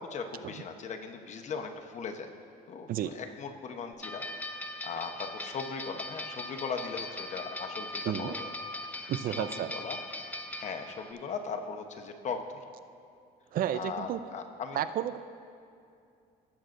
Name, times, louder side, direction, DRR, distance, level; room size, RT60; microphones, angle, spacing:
voice 1, 0.0-2.3 2.7-8.5 8.9-10.0 10.6-12.6 13.7-14.8, left 5 dB, 45° left, 4 dB, 0.9 m, -39 dB
sound 1, 4.0-11.1, left 1 dB, 10° left, 0.5 m, -40 dB
voice 2, 8.1-8.4 9.1-9.7 13.5-14.2 14.7-15.2, right 11 dB, 60° right, 12 dB, 0.4 m, -31 dB
17.5 x 7.7 x 2.5 m, 2.5 s
cardioid pair, 110°, 17 cm